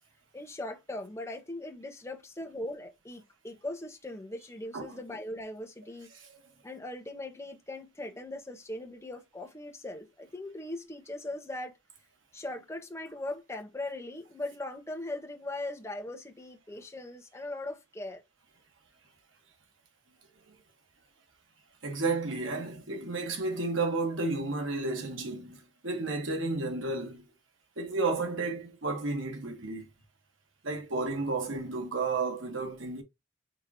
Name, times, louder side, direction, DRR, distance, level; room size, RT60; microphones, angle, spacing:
voice 1, 0.3-6.1 6.6-11.7 12.3-18.2, left 1 dB, 15° left, 1.0 m, -39 dB
voice 2, 21.8-27.3 27.8-29.9 30.6-33.0, right 3 dB, 75° right, 1.5 m, -32 dB
4.8 x 3.7 x 3.0 m
head